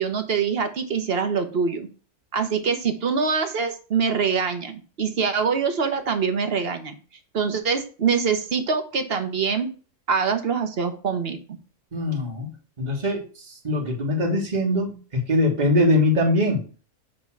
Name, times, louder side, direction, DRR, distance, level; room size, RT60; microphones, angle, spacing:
voice 1, 0.0-1.9 2.3-6.9 7.3-9.7 10.1-11.4, right 6 dB, 45° right, 7 dB, 1.1 m, -24 dB
voice 2, 11.9-12.5 12.8-16.6, left 1 dB, 30° right, 1 dB, 1.7 m, -22 dB
8.1 x 3.3 x 6.0 m, 0.37 s
omnidirectional pair, 1.6 m